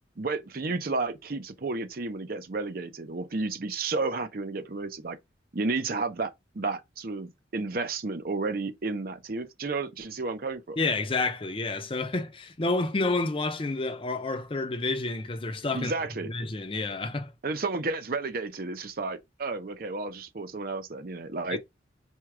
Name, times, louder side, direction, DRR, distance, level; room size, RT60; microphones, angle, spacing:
voice 1, 0.2-5.2 5.5-10.8 15.7-16.3 17.4-21.6, right 3 dB, 50° right, 0.6 m, -32 dB
voice 2, 10.8-15.9 16.3-17.3 21.5-21.6, left 3 dB, 30° left, 0.5 m, -29 dB
4.4 x 2.3 x 4.7 m
head